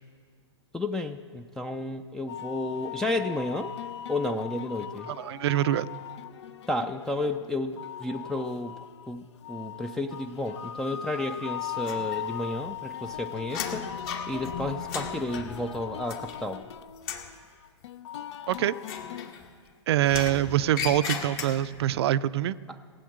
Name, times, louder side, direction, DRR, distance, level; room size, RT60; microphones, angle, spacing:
voice 1, 0.7-3.7 4.1-5.1 6.7-8.8 9.1-13.9 14.3-16.6 22.7-22.8, left 2 dB, 5° left, 7 dB, 0.3 m, -32 dB
sound 1, 2.3-19.3, left 10 dB, 70° left, 0.5 m, -39 dB
voice 2, 5.1-5.9 18.5-18.7 19.9-22.6, right 12 dB, 60° right, 16 dB, 0.4 m, -25 dB
sound 2, 11.8-12.6 12.9-16.7 17.0-17.4 18.8-19.7 20.1-21.9, left 6 dB, 50° left, 1.7 m, -37 dB
16.5 x 8.5 x 7.7 m, 2.1 s
hypercardioid pair, 130°, 15 cm